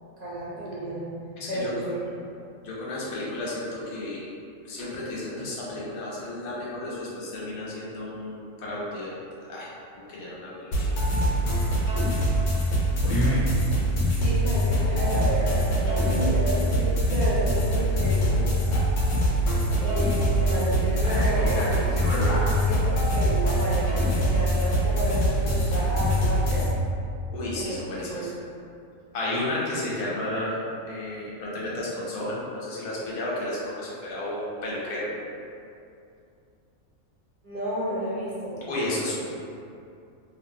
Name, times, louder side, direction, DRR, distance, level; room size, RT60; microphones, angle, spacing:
voice 1, 0.2-2.0 14.1-18.5 19.8-26.7 27.6-28.3 37.4-38.7, right 1 dB, 55° right, -9 dB, 0.5 m, -31 dB
voice 2, 1.4-1.9 2.6-4.3 4.6-9.1 9.5-10.9 27.3-28.3 29.1-30.6 30.9-35.1 38.7-39.2, left 1 dB, 85° left, -6 dB, 1.1 m, -32 dB
sound 1, 10.7-26.7, equal, 65° left, 1.0 m, -23 dB
2.8 x 2.4 x 2.6 m, 2.5 s
omnidirectional pair, 1.5 m